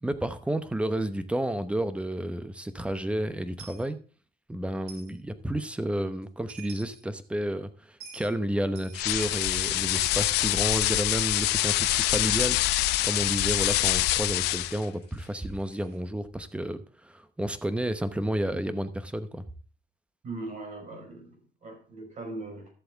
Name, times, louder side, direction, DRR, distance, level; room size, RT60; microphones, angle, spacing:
voice 1, 0.0-4.0 4.5-12.6 13.0-19.4, right 1 dB, 5° right, 0.9 m, -31 dB
Coin (dropping), 3.6-3.8 4.9-5.1 6.2-6.3 6.5-7.0 8.0-8.3 8.8-9.5 10.0-11.8 12.1-12.4 13.3-16.0, right 5 dB, 65° right, 3.4 m, -49 dB
sound 1, 8.9-14.8, left 16 dB, 90° left, 0.6 m, -25 dB
voice 2, 20.2-22.7, right 2 dB, 45° right, 5.1 m, -40 dB
13.5 x 7.7 x 3.6 m
cardioid pair, 110°, 17 cm